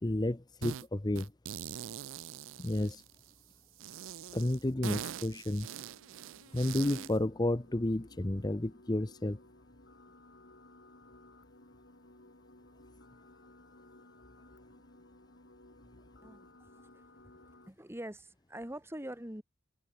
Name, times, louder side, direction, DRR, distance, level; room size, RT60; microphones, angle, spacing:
voice 1, 0.0-1.3 2.6-3.0 4.3-5.7 6.5-9.4, left 1 dB, 20° left, 0.8 m, -31 dB
sound 1, 0.6-0.9 1.2-3.3 3.8-7.2, right 9 dB, 90° right, 0.4 m, -43 dB
sound 2, 3.0-17.7, left 2 dB, 65° left, 4.4 m, -60 dB
voice 2, 16.2-17.0 17.7-19.4, right 1 dB, 15° right, 2.7 m, -44 dB
open air
head